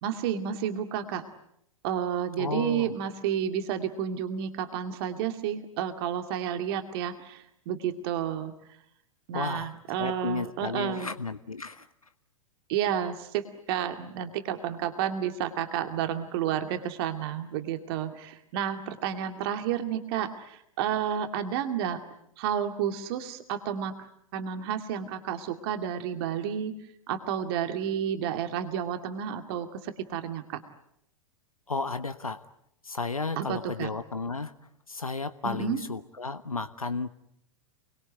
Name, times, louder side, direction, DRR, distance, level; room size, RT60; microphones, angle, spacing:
voice 1, 0.0-1.2 1.8-8.5 9.3-11.1 12.7-22.0 22.4-24.1 24.3-26.7 27.1-30.6 33.4-33.9 35.4-35.8, right 9 dB, 45° right, 7 dB, 2.3 m, -31 dB
voice 2, 2.4-2.9 9.3-9.7 10.0-11.9 31.7-32.4 32.8-34.5 34.9-37.1, left 3 dB, 85° left, 12 dB, 1.2 m, -33 dB
29.5 x 21.5 x 9.3 m, 0.76 s
figure-of-eight pair, 100°, 18 cm